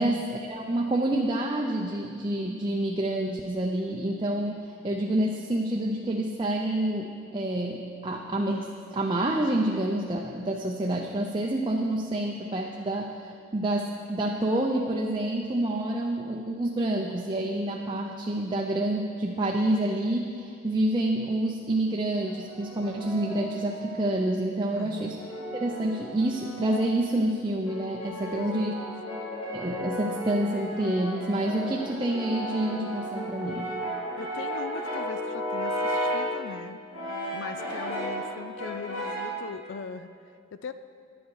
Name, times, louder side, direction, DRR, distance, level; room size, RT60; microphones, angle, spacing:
voice 1, 0.0-25.2 25.5-28.8 29.5-33.8, right 1 dB, 25° right, 0 dB, 0.5 m, -28 dB
Brass instrument, 22.2-24.2 24.9-27.0 27.7-36.3 36.9-38.3 38.6-39.4, equal, 85° left, 3.1 m, -34 dB
voice 2, 24.7-25.2 28.4-28.9 34.2-36.8 37.3-40.7, left 5 dB, 65° left, 11 dB, 0.4 m, -40 dB
10.5 x 10.0 x 4.7 m, 2.3 s
head